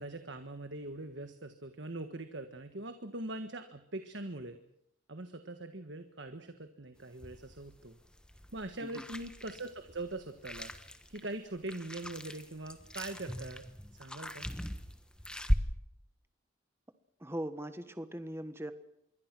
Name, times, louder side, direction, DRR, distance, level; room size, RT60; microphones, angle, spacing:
voice 1, 0.0-4.6 5.1-7.9 8.5-10.7 11.1-13.6 13.9-14.5, right 2 dB, 55° right, 8 dB, 1.5 m, -42 dB
sound 1, 7.0-15.5, equal, 5° left, 1.2 m, -39 dB
voice 2, 17.2-18.7, right 1 dB, 10° right, 10 dB, 1.4 m, -40 dB
26.5 x 22.5 x 6.2 m, 0.77 s
head